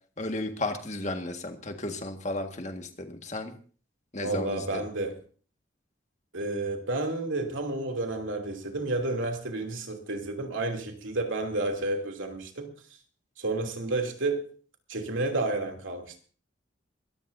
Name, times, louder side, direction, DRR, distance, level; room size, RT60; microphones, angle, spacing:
voice 1, 0.2-3.5 4.1-4.8, left 2 dB, 35° left, 1.7 m, -34 dB
voice 2, 4.2-5.2 6.3-12.7 13.4-14.5 14.9-16.2, right 2 dB, 90° right, 2.9 m, -31 dB
23.0 x 14.5 x 2.7 m
head